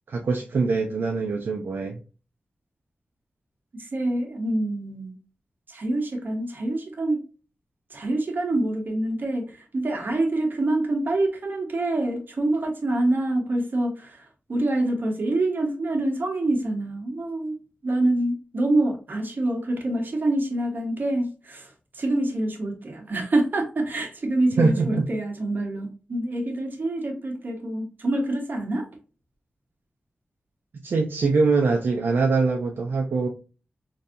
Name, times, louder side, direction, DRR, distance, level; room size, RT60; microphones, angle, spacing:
voice 1, 0.1-2.0 24.6-25.1 30.8-33.3, right 4 dB, 75° right, 0.4 m, -23 dB
voice 2, 3.7-5.1 5.7-7.2 7.9-17.6 17.8-28.9, right 1 dB, 60° right, 1.1 m, -26 dB
3.9 x 2.6 x 2.6 m
wide cardioid pair, 75°, 4 cm